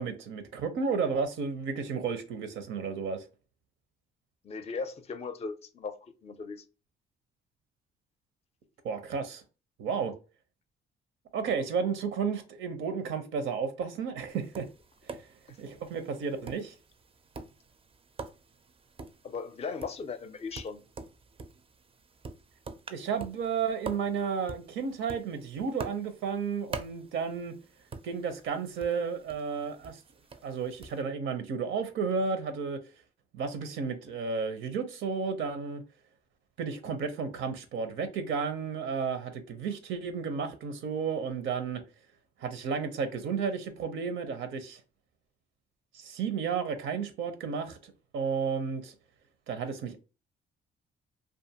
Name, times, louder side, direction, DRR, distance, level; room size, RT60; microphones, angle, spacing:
voice 1, 0.0-3.2 8.8-9.4 9.8-10.1 11.3-14.6 15.6-16.7 22.9-27.5 28.0-30.0 30.4-32.8 33.3-35.8 36.6-41.8 42.4-44.8 45.9-48.9 49.5-50.0, right 5 dB, 80° right, 0.6 m, -32 dB
voice 2, 4.4-6.0 6.2-6.6 15.5-15.6 19.2-20.8, left 5 dB, 30° left, 0.4 m, -37 dB
Tap, 14.3-31.0, right 4 dB, 30° right, 0.4 m, -46 dB
2.5 x 2.4 x 2.7 m
cardioid pair, 90°, 20 cm